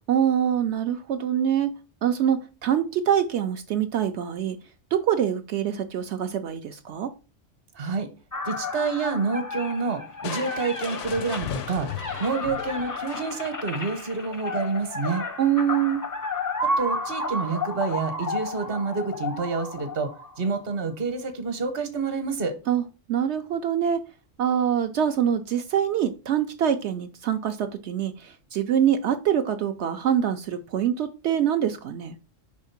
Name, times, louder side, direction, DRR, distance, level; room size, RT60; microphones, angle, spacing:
voice 1, 0.1-1.7 2.0-4.6 4.9-7.1 15.4-16.0 22.7-22.8 23.1-24.0 24.4-32.2, right 9 dB, 65° right, 0.8 m, -24 dB
voice 2, 7.8-8.1 8.4-11.9 12.2-15.2 16.8-20.1 20.4-22.5, right 4 dB, 50° right, 1.1 m, -28 dB
sound 1, 8.3-20.6, left 2 dB, 25° left, 0.4 m, -32 dB
Crushing, 10.2-13.6, left 9 dB, 70° left, 0.9 m, -36 dB
5.2 x 3.6 x 5.7 m
omnidirectional pair, 1.3 m